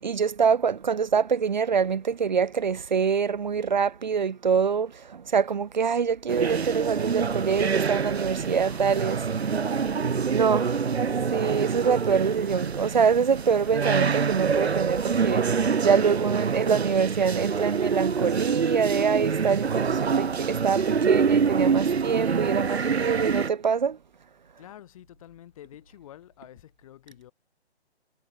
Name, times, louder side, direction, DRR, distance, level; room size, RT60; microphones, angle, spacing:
voice 1, 0.0-9.2 10.3-10.8 11.3-15.5 15.8-24.0, right 6 dB, 45° right, 0.4 m, -25 dB
sound 1, 6.3-23.5, right 6 dB, 70° right, 1.3 m, -26 dB
voice 2, 8.6-11.4 24.6-27.3, left 12 dB, 30° left, 6.7 m, -49 dB
figure-of-eight pair, 150°, 33 cm